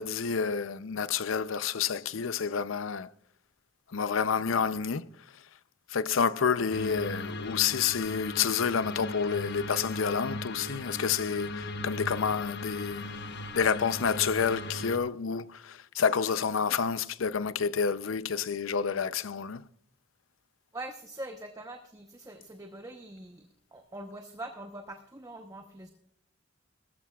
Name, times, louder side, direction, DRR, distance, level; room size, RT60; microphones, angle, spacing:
voice 1, 0.0-3.1 3.9-5.4 5.9-13.2 13.5-19.6, left 6 dB, 80° left, 0.6 m, -29 dB
sound 1, 6.7-15.0, left 2 dB, 60° left, 1.0 m, -38 dB
voice 2, 20.7-25.9, right 1 dB, 15° right, 0.9 m, -43 dB
20.0 x 13.5 x 2.4 m
head